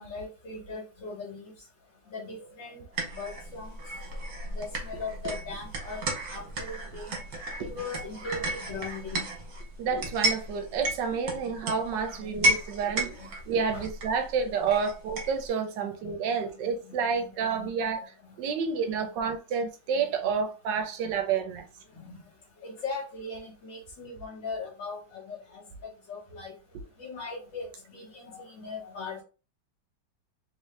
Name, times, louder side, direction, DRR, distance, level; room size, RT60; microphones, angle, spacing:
voice 1, 0.0-1.5 2.1-2.8 3.1-4.2 4.4-7.2 7.7-9.2 10.8-10.9 11.9-12.3 13.2-13.3 13.7-13.8 14.4-14.5 15.8-16.4 16.6-17.7 18.3-18.4 18.9-19.1 19.9-20.5 21.9-22.2 22.6-26.5 27.0-29.2, left 3 dB, 70° left, 1.9 m, -40 dB
sound 1, 2.9-15.5, right 2 dB, 55° right, 1.4 m, -33 dB
voice 2, 9.8-13.2 13.5-18.0 18.4-21.7, right 6 dB, 75° right, 1.2 m, -29 dB
3.5 x 2.7 x 3.2 m
omnidirectional pair, 2.0 m